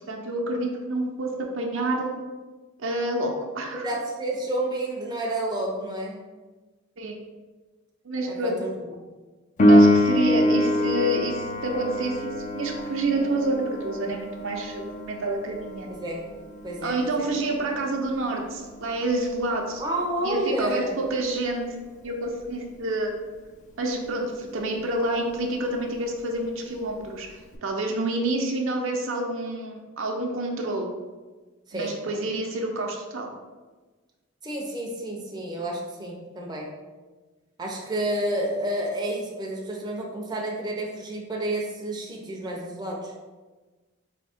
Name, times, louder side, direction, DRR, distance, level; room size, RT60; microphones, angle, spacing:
voice 1, 0.1-2.1 2.8-3.9 7.0-7.2 8.0-8.6 9.7-15.9 16.8-19.8 20.2-21.7 22.0-23.1 23.8-30.9 31.7-33.3, right 2 dB, 70° right, 1 dB, 0.6 m, -28 dB
voice 2, 3.7-6.2 8.3-8.9 15.9-16.3 16.6-17.3 19.8-20.9 31.7-32.0 34.4-36.7 37.6-43.1, right 1 dB, 20° right, -2 dB, 0.6 m, -30 dB
Piano, 9.6-20.0 27.5-27.6, left 1 dB, 35° left, 0.4 m, -25 dB
3.5 x 2.8 x 4.2 m, 1.3 s
head